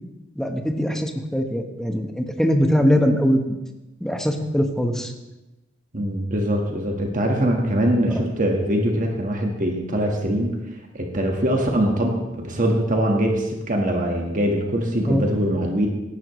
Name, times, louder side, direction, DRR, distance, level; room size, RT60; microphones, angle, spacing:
voice 1, 0.4-3.5 4.0-5.1 8.0-8.2 15.0-15.2, equal, 5° left, 4 dB, 1.1 m, -22 dB
voice 2, 5.9-10.6 10.9-15.9, right 1 dB, 45° right, 2 dB, 1.5 m, -22 dB
17.5 x 11.0 x 3.1 m, 1.0 s
head